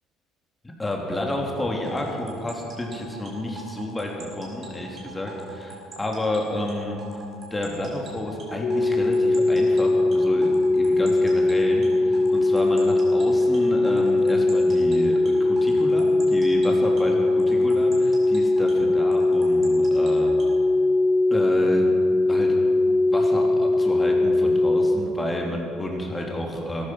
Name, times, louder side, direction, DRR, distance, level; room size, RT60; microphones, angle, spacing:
voice 1, 0.8-7.2 7.5-20.4 21.3-22.6 23.1-26.9, left 1 dB, 15° left, 0 dB, 3.1 m, -30 dB
sound 1, 1.8-20.6, right 4 dB, 40° right, 4.8 m, -43 dB
sound 2, 8.6-25.0, left 2 dB, 50° left, 2.3 m, -20 dB
17.5 x 13.5 x 5.7 m, 2.5 s
figure-of-eight pair, 55°, 0 cm